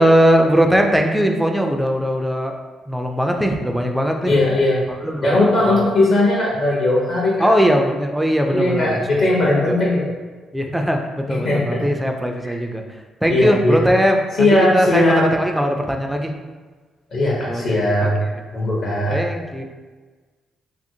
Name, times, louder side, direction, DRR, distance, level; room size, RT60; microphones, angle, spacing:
voice 1, 0.0-2.6 2.9-4.3 5.0-5.5 7.4-9.0 9.7-9.8 10.5-12.8 13.2-16.3 17.5-17.7 19.1-19.6, equal, 5° right, 3 dB, 0.3 m, -19 dB
voice 2, 4.2-4.9 5.2-7.5 8.5-10.1 11.3-11.9 12.4-12.6 13.3-13.8 14.4-15.3 17.1-18.2 18.5-19.2, left 1 dB, 60° left, -5 dB, 0.7 m, -18 dB
2.7 x 2.5 x 2.7 m, 1.4 s
cardioid pair, 90°, 0 cm